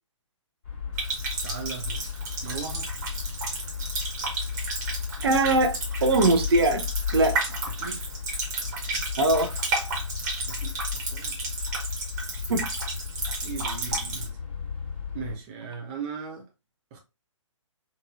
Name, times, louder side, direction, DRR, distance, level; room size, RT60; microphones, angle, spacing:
sound 1, 0.6-15.4, left 7 dB, 40° left, 2.1 m, -34 dB
Water tap faucet, 1.0-14.3, right 3 dB, 35° right, 1.3 m, -33 dB
voice 1, 1.4-2.0 2.4-2.9 7.7-8.1 8.7-9.0 10.5-11.5 13.4-14.4 15.1-16.5 16.9-17.0, right 6 dB, 20° right, 0.4 m, -38 dB
voice 2, 5.2-6.9 7.1-7.4 9.2-9.6 12.5-12.7, right 2 dB, 50° right, 0.7 m, -22 dB
4.1 x 2.6 x 2.4 m
figure-of-eight pair, 130°, 17 cm